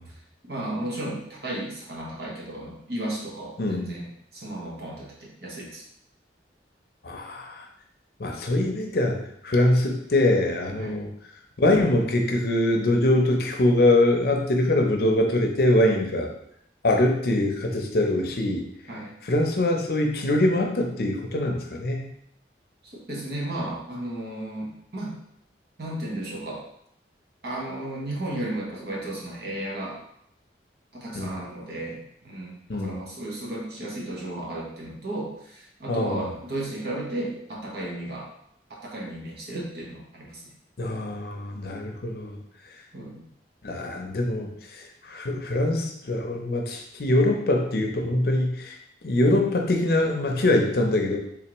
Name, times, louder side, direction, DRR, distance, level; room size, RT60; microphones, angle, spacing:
voice 1, 0.4-5.8 10.8-11.0 18.9-19.1 22.9-25.2 25.8-26.6 27.4-30.0 30.9-38.3 38.8-40.5 42.9-43.2, right 1 dB, 60° right, -3 dB, 1.1 m, -34 dB
voice 2, 7.0-7.7 8.2-9.2 9.4-11.1 11.6-16.3 16.8-18.7 19.2-22.1 31.1-31.3 32.7-33.0 35.9-36.2 40.8-42.4 43.6-48.8 49.0-51.2, left 1 dB, 55° left, 2 dB, 0.6 m, -23 dB
3.6 x 3.4 x 3.0 m, 0.71 s
head